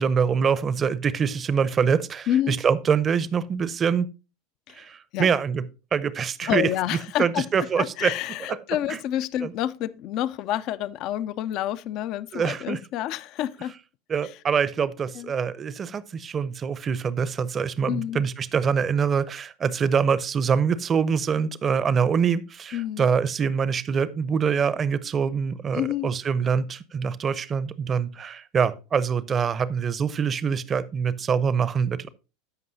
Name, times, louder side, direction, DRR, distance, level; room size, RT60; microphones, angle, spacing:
voice 1, 0.0-4.1 4.8-5.6 5.9-8.1 8.5-8.6 8.9-9.0 9.4-9.5 12.3-12.8 14.1-32.1, right 6 dB, 30° right, 0.6 m, -24 dB
voice 2, 6.4-13.7 15.1-15.3 17.9-18.2 22.7-23.1 25.7-26.1, left 12 dB, 50° left, 0.4 m, -28 dB
14.0 x 5.3 x 2.7 m
hypercardioid pair, 90°, 0 cm